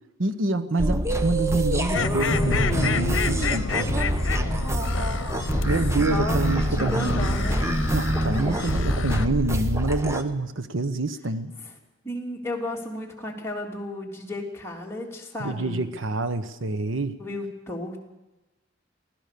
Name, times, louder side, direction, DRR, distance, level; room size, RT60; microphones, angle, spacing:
voice 1, 0.2-4.2 5.6-7.3 7.9-11.5 15.4-17.2, right 2 dB, 85° right, 12 dB, 1.2 m, -27 dB
sound 1, 0.8-10.2, equal, 15° right, 1.0 m, -26 dB
sound 2, 1.9-9.3, left 4 dB, 75° left, 0.9 m, -29 dB
voice 2, 6.1-7.7 11.6-11.7 12.0-15.8 17.2-18.0, left 1 dB, 15° left, -1 dB, 3.2 m, -33 dB
24.0 x 17.0 x 6.9 m, 1.1 s
head